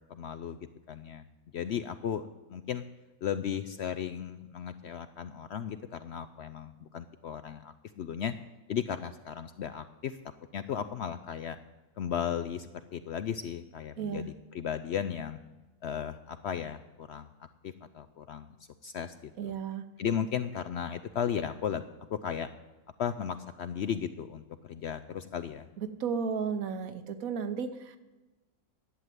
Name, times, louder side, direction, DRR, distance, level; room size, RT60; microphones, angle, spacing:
voice 1, 0.1-1.2 1.5-2.8 3.2-8.3 8.7-10.2 10.5-11.6 12.0-15.4 15.8-18.6 18.8-19.5 20.0-21.8 22.1-22.5 23.0-25.7, left 8 dB, 65° left, 11 dB, 0.7 m, -35 dB
voice 2, 14.0-14.3 19.4-19.8 25.8-28.0, right 6 dB, 70° right, 10 dB, 1.3 m, -34 dB
11.5 x 7.9 x 9.0 m, 1.1 s
omnidirectional pair, 1.5 m